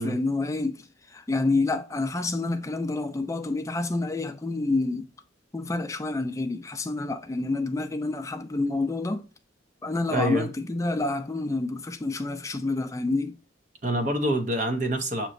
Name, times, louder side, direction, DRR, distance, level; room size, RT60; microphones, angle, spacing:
voice 1, 0.0-5.1 5.5-9.3 9.8-13.3, left 2 dB, 15° left, 0.4 m, -28 dB
voice 2, 10.1-10.5 13.8-15.3, right 1 dB, 40° right, 0.7 m, -26 dB
6.1 x 2.9 x 2.5 m
head